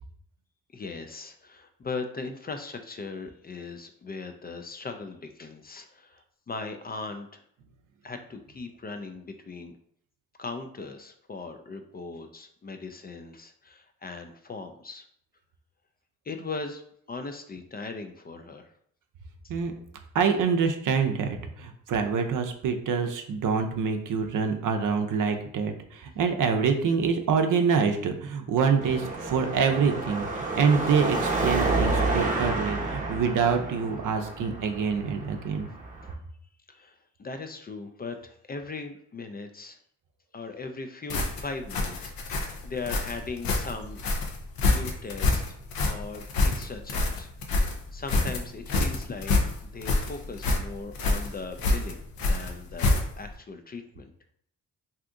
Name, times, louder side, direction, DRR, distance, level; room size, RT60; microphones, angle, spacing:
voice 1, 0.7-7.4 8.0-9.8 10.4-15.0 16.3-16.8 17.1-18.7 36.7-39.8 40.3-44.0 44.7-45.4 45.8-47.3 47.9-49.4 49.6-52.0 52.3-54.1, left 3 dB, 30° left, 7 dB, 0.3 m, -39 dB
voice 2, 20.1-35.7, right 6 dB, 65° right, 5 dB, 0.6 m, -26 dB
Car passing by / Traffic noise roadway noise / Engine, 28.8-36.1, right 3 dB, 25° right, 0.8 m, -30 dB
sound 1, 41.1-53.3, left 2 dB, 90° left, 0.6 m, -27 dB
2.7 x 2.4 x 3.5 m, 0.67 s
cardioid pair, 55°, 34 cm